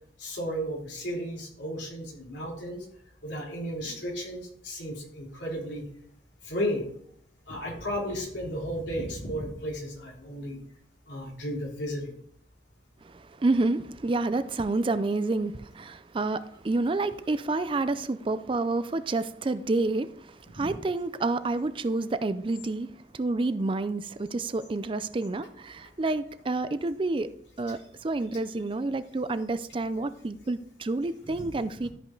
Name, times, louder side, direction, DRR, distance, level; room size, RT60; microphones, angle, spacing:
voice 1, 0.2-2.8 3.2-5.8 6.4-6.8 7.5-10.6 11.1-12.1 20.5-20.8 31.3-31.5 31.8-31.9, equal, 75° left, 3.5 m, -34 dB
voice 2, 13.0-22.9 23.1-27.3 27.6-31.9, right 2 dB, 30° right, 0.4 m, -29 dB
13.5 x 5.4 x 3.9 m
head